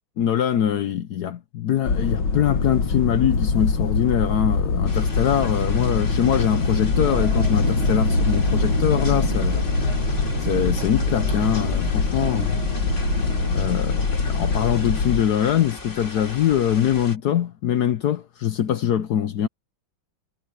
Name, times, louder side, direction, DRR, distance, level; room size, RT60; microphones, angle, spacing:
voice 1, 0.2-9.7 10.4-12.6 13.5-19.5, left 10 dB, 65° left, 1.2 m, -23 dB
sound 1, 1.8-15.2, left 4 dB, 85° left, 2.5 m, -23 dB
sound 2, 4.9-17.2, left 3 dB, 35° left, 3.6 m, -38 dB
sound 3, 6.9-13.5, right 3 dB, 75° right, 5.1 m, -29 dB
omnidirectional pair, 2.1 m